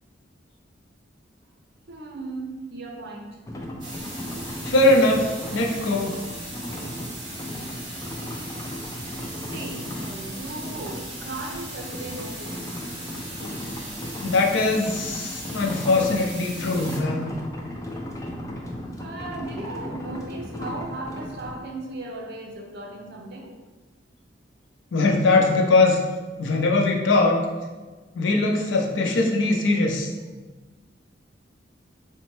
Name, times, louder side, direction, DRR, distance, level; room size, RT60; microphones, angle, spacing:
voice 1, 1.9-3.4 9.5-12.7 19.0-23.5, right 2 dB, 60° right, 1 dB, 0.6 m, -36 dB
sound 1, 3.5-21.6, left 1 dB, 20° left, 0.3 m, -36 dB
sound 2, 3.8-17.0, right 1 dB, 25° right, 1.0 m, -39 dB
voice 2, 4.6-6.2 13.4-13.8 14.2-17.3 24.9-26.0 26.4-27.4 28.2-30.1, left 2 dB, 90° left, 1 dB, 0.5 m, -21 dB
4.0 x 2.1 x 3.0 m, 1.3 s
head